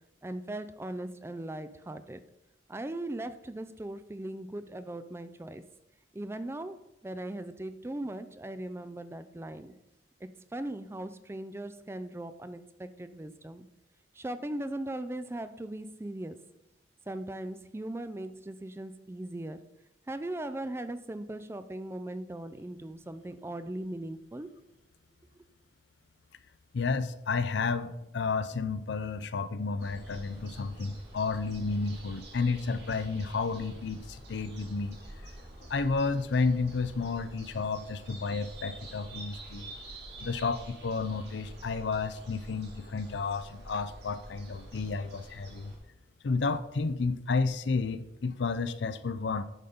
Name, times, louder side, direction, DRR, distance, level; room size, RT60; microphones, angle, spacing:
voice 1, 0.2-2.2 2.7-5.6 6.1-6.8 7.0-9.7 10.2-13.7 14.1-16.4 17.1-19.6 20.1-24.5, right 1 dB, 15° right, 11 dB, 0.3 m, -39 dB
voice 2, 26.7-35.3 35.7-39.7 40.2-45.7 46.2-49.4, left 4 dB, 70° left, 13 dB, 0.5 m, -31 dB
sound 1, 29.8-45.8, right 1 dB, 65° right, 2.3 m, -48 dB
11.0 x 3.9 x 5.2 m, 0.89 s
head